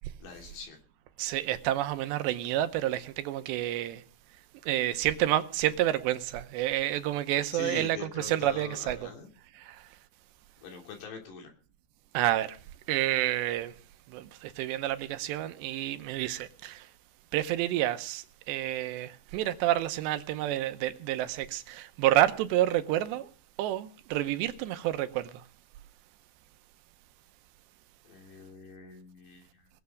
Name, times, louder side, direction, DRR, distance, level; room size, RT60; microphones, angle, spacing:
voice 1, 0.2-0.8 7.5-9.3 10.6-11.5 28.1-29.7, left 5 dB, 70° left, 5.2 m, -43 dB
voice 2, 1.2-4.0 4.6-9.1 9.6-9.9 12.1-12.6 12.9-13.7 14.1-16.9 17.3-23.3 23.6-25.4, right 13 dB, 80° right, 3.0 m, -29 dB
20.0 x 7.6 x 7.0 m
omnidirectional pair, 5.0 m